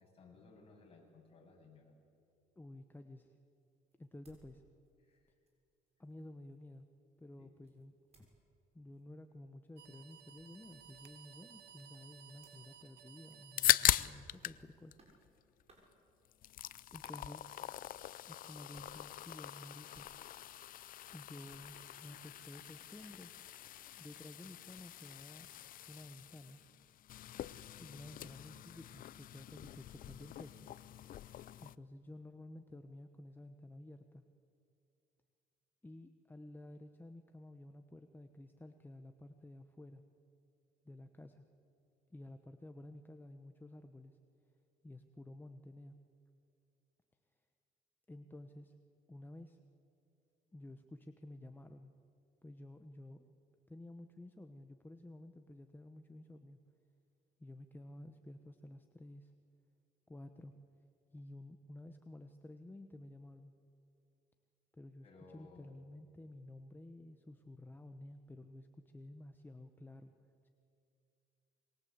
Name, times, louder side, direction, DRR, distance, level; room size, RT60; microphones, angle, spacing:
voice 1, 0.0-1.8 5.0-5.3 7.4-7.6 65.0-65.7, left 4 dB, 35° left, -1 dB, 7.8 m, -60 dB
voice 2, 2.6-3.4 4.0-4.6 6.0-6.9 7.2-7.9 8.7-15.0 16.9-17.5 18.2-20.1 21.1-23.3 24.0-25.5 25.8-26.6 27.8-30.7 31.6-34.2 35.8-40.0 40.8-41.4 42.1-44.2 44.8-46.0 48.1-48.7 49.1-49.6 50.5-52.0 52.4-53.3 53.7-56.6 57.4-59.3 60.1-60.6 61.1-63.5 64.8-65.1 65.3-70.1 70.4-70.5, left 1 dB, 10° left, 6 dB, 1.1 m, -52 dB
sound 1, 3.9-5.2 5.5-8.5 8.9-9.3 9.6-9.8 10.2-13.8 14.4-14.7 15.0-15.3 15.6-15.9 17.0-18.0 18.6-19.0 19.4-20.8 21.5-22.0 23.0-23.2, right 3 dB, 40° right, 6.9 m, -68 dB
sound 2, 9.8-14.7, right 9 dB, 75° right, 1.7 m, -58 dB
sound 3, 13.3-14.6 14.9-15.9 16.2-31.8, left 12 dB, 55° left, 0.6 m, -40 dB
26.0 x 23.0 x 8.2 m, 2.5 s
cardioid pair, 110°, 17 cm